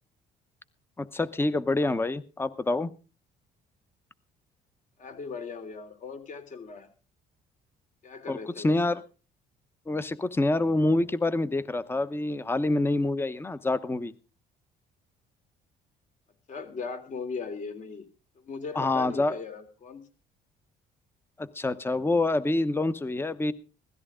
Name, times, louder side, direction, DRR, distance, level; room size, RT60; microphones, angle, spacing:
voice 1, 1.0-2.9 8.3-9.0 9.9-14.1 18.7-19.4 21.4-23.5, left 2 dB, 15° left, 15 dB, 0.9 m, -26 dB
voice 2, 5.0-6.9 8.0-8.7 16.5-18.1 18.4-20.0, left 5 dB, 45° left, 8 dB, 3.1 m, -38 dB
17.0 x 13.5 x 3.7 m, 0.33 s
cardioid pair, 110°, 17 cm